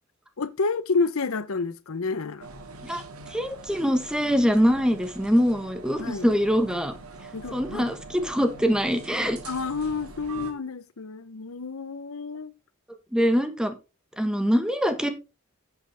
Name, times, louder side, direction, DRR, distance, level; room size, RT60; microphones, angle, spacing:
voice 1, 0.4-2.5 6.0-6.3 7.3-7.9 9.4-12.5, left 4 dB, 75° left, 0.8 m, -29 dB
sound 1, 2.4-10.5, right 3 dB, 90° right, 2.1 m, -43 dB
voice 2, 3.3-6.9 7.5-9.4 13.1-13.7 14.2-15.1, equal, 5° right, 1.2 m, -23 dB
10.0 x 8.0 x 3.4 m
head